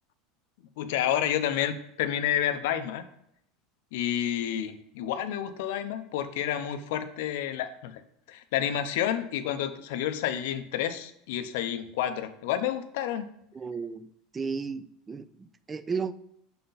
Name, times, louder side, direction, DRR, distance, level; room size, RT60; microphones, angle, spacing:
voice 1, 0.8-3.0 3.9-8.0 8.3-13.3, left 10 dB, 75° left, 0.6 m, -30 dB
voice 2, 13.5-16.1, right 5 dB, 20° right, 0.3 m, -34 dB
6.6 x 4.1 x 3.9 m
supercardioid pair, 135°, 0 cm